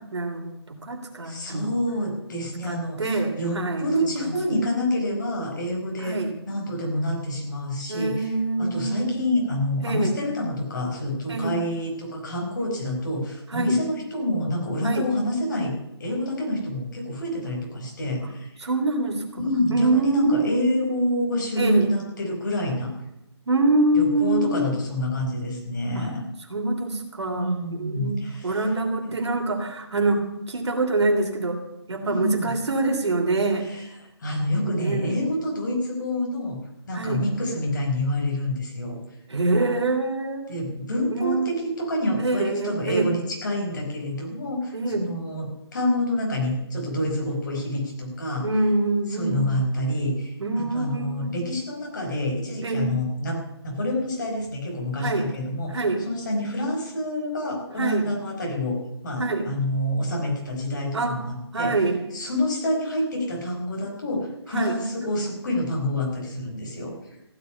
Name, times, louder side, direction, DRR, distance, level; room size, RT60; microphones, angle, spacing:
voice 1, 0.1-1.7 2.6-4.3 6.0-6.3 7.9-9.1 9.8-10.1 11.3-11.6 13.5-13.7 14.8-15.1 18.6-19.4 19.7-20.5 21.5-21.9 23.5-24.6 25.9-26.1 26.5-31.6 31.9-33.7 34.7-35.1 36.9-37.2 39.3-40.5 41.2-41.5 42.2-43.1 44.7-45.1 48.4-49.5 50.4-51.5 52.6-52.9 55.0-55.3 55.7-56.0 57.8-58.1 59.2-59.5 60.9-61.2 61.5-62.0 64.5-64.7, right 2 dB, 80° right, 4 dB, 3.3 m, -25 dB
voice 2, 1.2-6.2 6.5-8.3 8.6-18.5 19.4-22.9 23.9-26.3 27.3-28.6 32.0-32.5 33.7-33.8 34.2-36.6 36.9-39.0 40.5-48.5 49.1-55.7 56.0-58.8 59.0-61.7 62.1-66.9, left 1 dB, 45° left, 0 dB, 4.8 m, -27 dB
15.5 x 6.9 x 9.9 m, 0.87 s
hypercardioid pair, 175°, 14 cm